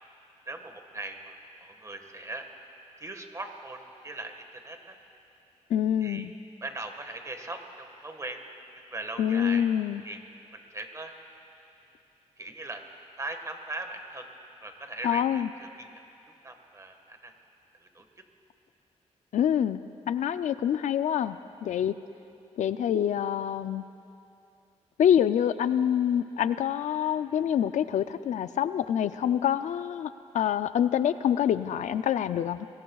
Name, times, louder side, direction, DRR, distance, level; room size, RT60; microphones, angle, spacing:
voice 1, 0.5-2.4 3.0-5.0 6.0-6.3 6.6-8.4 8.7-9.7 10.0-10.2 10.5-11.1 12.4-12.8 13.2-14.3 14.6-15.9 16.4-17.3 17.8-18.0, right 2 dB, 25° right, 5 dB, 1.5 m, -39 dB
voice 2, 5.7-6.3 9.2-10.0 15.0-15.5 19.3-21.9 22.6-23.8 25.0-32.7, left 9 dB, 85° left, 12 dB, 0.4 m, -26 dB
27.0 x 20.5 x 2.4 m, 2.7 s
cardioid pair, 85°, 12 cm